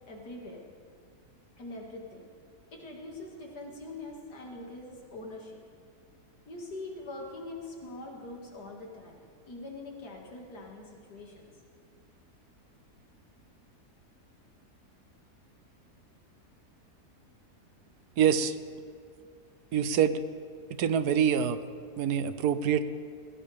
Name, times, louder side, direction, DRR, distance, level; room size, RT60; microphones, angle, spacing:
voice 1, 0.1-0.6 1.6-2.3 2.7-5.6 6.5-11.5, left 2 dB, 90° left, 0 dB, 2.8 m, -43 dB
voice 2, 18.2-18.5 19.7-20.2 20.8-21.6 22.0-22.8, right 8 dB, 80° right, 12 dB, 1.3 m, -25 dB
20.0 x 16.5 x 3.5 m, 2.2 s
omnidirectional pair, 1.7 m